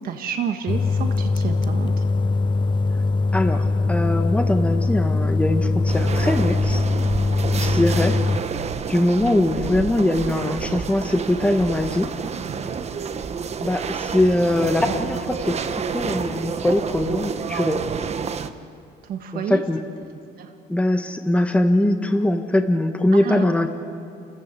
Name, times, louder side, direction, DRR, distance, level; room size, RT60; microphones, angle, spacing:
voice 1, 0.0-2.0 7.5-7.8 19.0-19.6 20.4-20.5 23.2-23.4, right 7 dB, 60° right, 5 dB, 1.5 m, -30 dB
sound 1, 0.7-8.4, left 3 dB, 30° left, 0.7 m, -21 dB
voice 2, 3.3-6.8 7.6-8.2 8.9-12.1 13.6-15.6 15.9-17.8 19.3-19.8 20.7-23.7, left 1 dB, 5° left, 6 dB, 1.3 m, -21 dB
sound 2, 5.9-18.5, right 6 dB, 40° right, 1.1 m, -29 dB
29.5 x 14.5 x 8.3 m, 2.4 s
cardioid pair, 110°, 17 cm